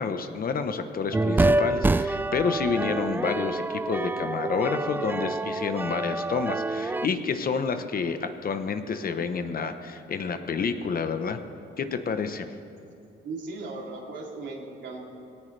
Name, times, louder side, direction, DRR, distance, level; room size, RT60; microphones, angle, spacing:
voice 1, 0.0-11.4 11.8-12.5, left 5 dB, 45° left, 8 dB, 1.0 m, -29 dB
sound 1, 1.1-7.1, right 2 dB, 10° right, 0.3 m, -27 dB
voice 2, 13.2-15.1, right 3 dB, 65° right, -2 dB, 3.2 m, -37 dB
18.5 x 18.0 x 3.4 m, 2.6 s
cardioid pair, 90°, 20 cm